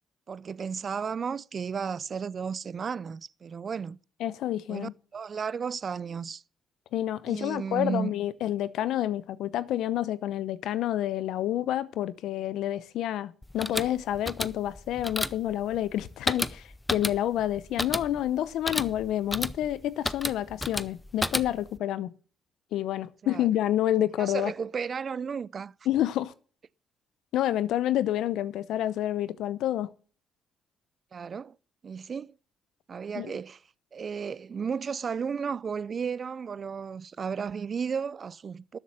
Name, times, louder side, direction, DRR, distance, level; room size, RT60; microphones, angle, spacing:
voice 1, 0.3-4.0 4.7-6.4 7.3-8.1 23.2-23.5 24.2-25.7 31.1-31.6 31.8-32.4 32.9-33.6 33.9-38.8, right 6 dB, 45° right, 0.4 m, -33 dB
voice 2, 4.2-4.9 6.9-22.1 22.7-24.5 25.9-26.3 27.3-29.9 33.1-33.4, left 12 dB, 85° left, 0.7 m, -29 dB
sound 1, 13.4-21.8, left 1 dB, 10° left, 0.6 m, -33 dB
13.0 x 7.4 x 5.6 m
cardioid pair, 90°, 0 cm